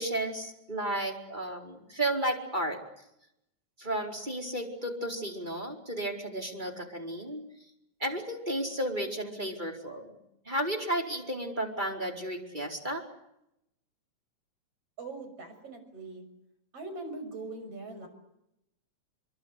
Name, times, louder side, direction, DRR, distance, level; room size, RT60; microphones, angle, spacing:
voice 1, 0.0-2.8 3.8-7.4 8.0-10.1 10.4-13.0, right 1 dB, 15° right, 2 dB, 4.6 m, -33 dB
voice 2, 15.0-16.3 16.7-18.1, right 3 dB, 50° right, 8 dB, 7.5 m, -41 dB
27.5 x 23.5 x 8.2 m, 0.82 s
omnidirectional pair, 3.4 m